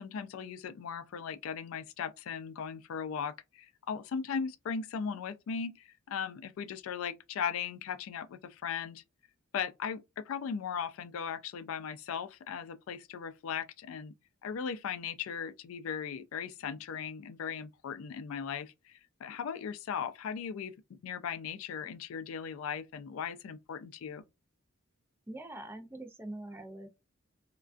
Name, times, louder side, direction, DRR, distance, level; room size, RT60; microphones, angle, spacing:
voice 1, 0.0-9.0 9.5-14.1 14.4-24.2, left 7 dB, 80° left, 0.3 m, -38 dB
voice 2, 25.3-26.9, right 1 dB, 10° right, 0.4 m, -43 dB
2.3 x 2.2 x 2.4 m
head